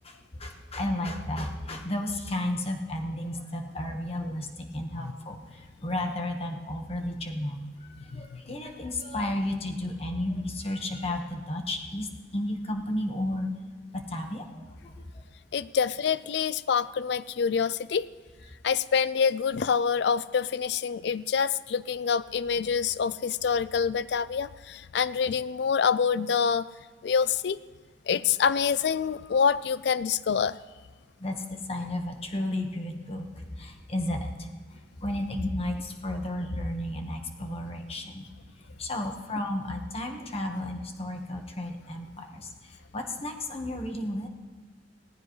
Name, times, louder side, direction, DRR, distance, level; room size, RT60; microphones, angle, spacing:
voice 1, 0.0-4.5 4.7-7.6 8.0-12.1 12.3-13.5 13.9-14.4 14.8-15.0 31.2-31.4 31.7-34.5 35.0-38.2 38.8-44.3, left 1 dB, 35° left, 4 dB, 1.4 m, -33 dB
voice 2, 15.5-18.1 18.6-26.7 27.0-27.6 28.1-30.6, left 6 dB, 65° left, 17 dB, 0.4 m, -26 dB
18.0 x 14.5 x 3.2 m, 1.4 s
head